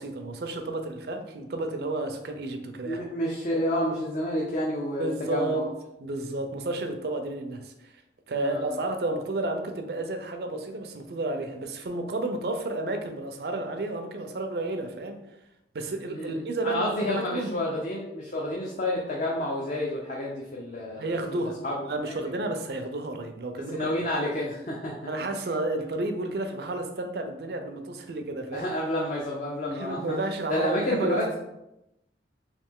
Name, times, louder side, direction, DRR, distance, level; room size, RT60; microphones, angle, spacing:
voice 1, 0.0-3.0 5.0-5.6 6.0-7.9 8.3-15.2 15.7-17.7 21.0-23.9 25.1-28.7 29.7-31.3, right 2 dB, 60° right, 5 dB, 0.5 m, -31 dB
voice 2, 2.9-5.7 8.4-8.6 16.1-16.3 16.6-21.1 21.6-21.7 23.7-25.1 28.5-30.1 30.5-31.3, left 1 dB, 45° left, -3 dB, 0.5 m, -29 dB
3.2 x 2.9 x 3.5 m, 0.90 s
head